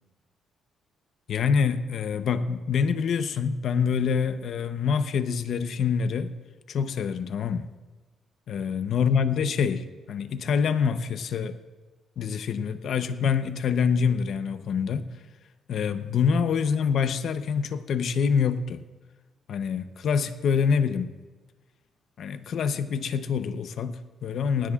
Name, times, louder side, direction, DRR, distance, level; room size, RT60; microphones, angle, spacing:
voice 1, 1.3-6.3 6.7-7.7 8.5-11.6 12.2-15.1 15.7-18.8 19.5-21.1 22.2-24.7, left 6 dB, 65° left, 10 dB, 0.8 m, -26 dB
19.5 x 16.5 x 2.5 m, 1.3 s
cardioid pair, 90°, 0 cm